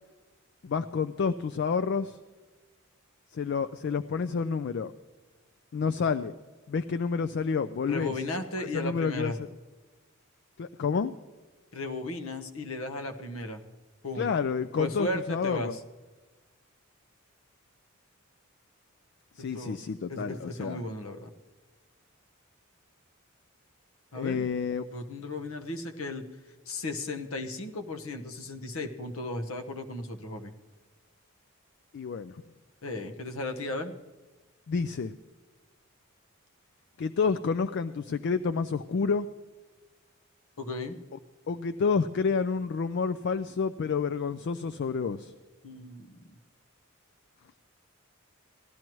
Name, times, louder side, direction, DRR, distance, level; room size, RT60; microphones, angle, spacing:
voice 1, 0.6-2.2 3.3-4.9 5.7-6.3 6.7-8.1 8.7-9.3 10.6-11.1 14.2-15.7 19.4-20.8 24.1-24.8 31.9-32.4 34.7-35.1 37.0-39.3 41.5-45.3, left 5 dB, 55° left, 12 dB, 0.4 m, -29 dB
voice 2, 7.9-9.4 11.7-13.6 14.0-14.3 14.8-15.8 19.4-19.8 20.1-21.3 24.1-24.5 24.9-26.3 26.7-30.5 32.8-33.9 40.6-41.0 45.6-46.2, left 2 dB, 80° left, 6 dB, 1.0 m, -35 dB
17.5 x 12.0 x 3.1 m, 1.3 s
head